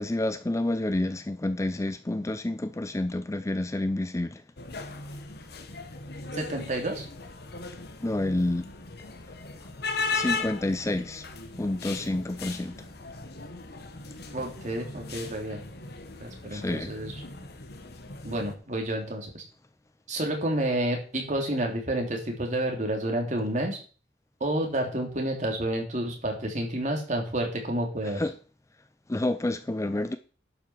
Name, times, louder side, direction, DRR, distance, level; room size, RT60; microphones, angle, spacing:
voice 1, 0.0-4.4 8.0-8.7 10.1-11.3 11.6-12.8 16.5-16.9 28.0-28.3 29.1-30.2, left 1 dB, 15° left, 0.5 m, -29 dB
sound 1, 4.6-18.5, left 4 dB, 55° left, 1.3 m, -38 dB
voice 2, 6.3-7.1 14.3-15.6 16.2-17.2 18.2-19.4 20.1-23.8 24.4-28.2, right 1 dB, 40° right, 2.8 m, -30 dB
11.5 x 5.8 x 6.0 m
head